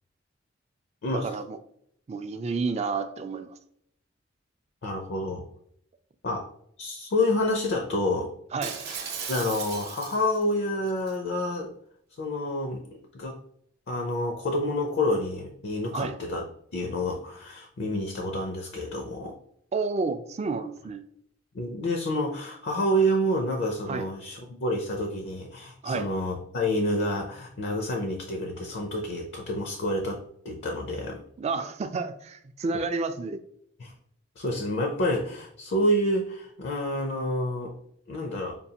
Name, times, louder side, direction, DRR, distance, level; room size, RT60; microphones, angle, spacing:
voice 1, 1.1-1.6 2.1-3.6 8.5-8.8 15.9-16.1 19.7-21.0 23.9-24.1 25.8-26.1 31.4-33.4, right 4 dB, 35° right, 10 dB, 0.3 m, -30 dB
voice 2, 4.8-5.4 6.2-6.5 6.8-8.3 9.3-11.7 12.2-12.9 13.1-13.4 13.9-16.5 16.7-19.3 21.5-31.2 33.8-33.9 34.4-37.7 38.1-38.6, left 1 dB, 60° left, 3 dB, 0.5 m, -28 dB
Shatter, 8.6-10.4 10.9-11.1, right 6 dB, 55° right, 0.8 m, -36 dB
5.2 x 2.3 x 2.8 m, 0.68 s
head